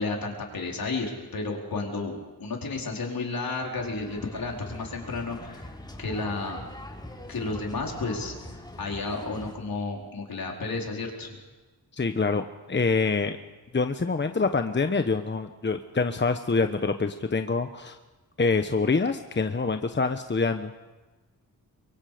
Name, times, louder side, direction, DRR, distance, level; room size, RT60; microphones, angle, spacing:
voice 1, 0.0-5.7 6.0-6.6 7.3-8.3 8.8-11.4, left 3 dB, 65° left, 0 dB, 4.7 m, -32 dB
sound 1, 3.8-9.5, left 1 dB, 10° left, 4.0 m, -43 dB
voice 2, 11.9-13.4 13.7-18.0 18.4-20.7, left 4 dB, 30° left, 8 dB, 1.1 m, -26 dB
24.0 x 23.5 x 5.2 m, 1.2 s
cardioid pair, 60°, 38 cm